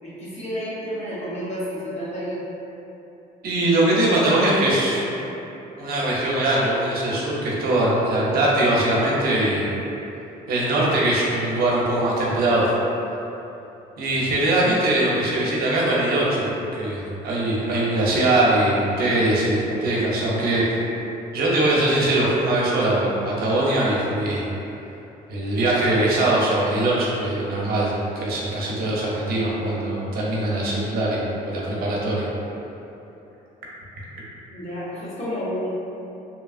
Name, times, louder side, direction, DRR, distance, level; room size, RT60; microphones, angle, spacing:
voice 1, 0.0-2.4 34.5-35.7, equal, 40° left, -8 dB, 0.9 m, -30 dB
voice 2, 3.4-5.0 5.8-9.7 10.5-12.6 14.0-20.6 21.3-24.4 25.3-27.9 28.2-32.3, right 1 dB, 65° right, -5 dB, 0.7 m, -21 dB
2.9 x 2.3 x 2.4 m, 2.9 s
cardioid pair, 110°, 17 cm